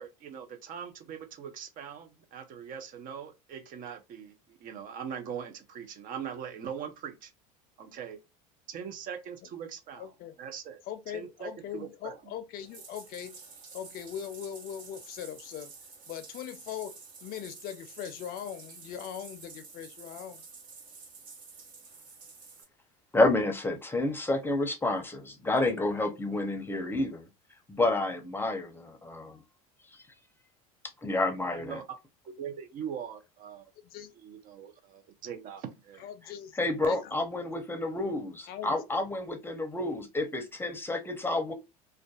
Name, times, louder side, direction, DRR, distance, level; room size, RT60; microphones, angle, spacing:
voice 1, 0.0-7.3 7.8-8.2 8.7-10.1 10.4-10.8 11.1-12.1 31.5-32.0 32.2-33.7 34.2-36.0, right 8 dB, 45° right, 0.6 m, -41 dB
voice 2, 10.0-10.3 10.9-13.4 13.7-15.7 16.1-16.9 17.2-20.4 33.8-34.1 36.0-37.1 38.5-38.8, left 9 dB, 50° left, 0.5 m, -40 dB
Bathtub (filling or washing), 12.6-22.6, right 4 dB, 60° right, 1.3 m, -50 dB
voice 3, 23.1-27.3 27.7-29.4 31.0-31.8 36.6-41.5, left 2 dB, 10° left, 0.7 m, -29 dB
2.5 x 2.2 x 2.3 m
hypercardioid pair, 90°, 19 cm